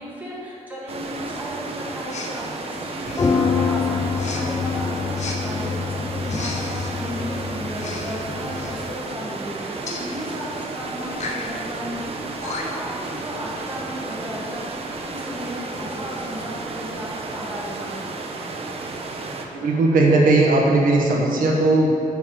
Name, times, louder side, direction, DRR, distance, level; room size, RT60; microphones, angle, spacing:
voice 1, 0.0-18.2, equal, 10° right, -6 dB, 2.0 m, -34 dB
sound 1, 0.9-19.5, right 3 dB, 45° right, 0.8 m, -33 dB
Respiratory sounds, 2.1-2.4 3.0-3.4 4.2-4.4 5.2-5.4 6.2-6.9 7.7-8.1 8.4-8.7 9.9-10.0 11.1-11.5 12.1-12.2 12.4-12.9, left 4 dB, 55° left, 1.0 m, -34 dB
sound 2, 3.1-9.0, left 5 dB, 20° left, 0.4 m, -26 dB
voice 2, 19.5-21.9, right 2 dB, 85° right, -2 dB, 1.3 m, -17 dB
9.2 x 4.7 x 7.2 m, 2.4 s
wide cardioid pair, 150°, 14 cm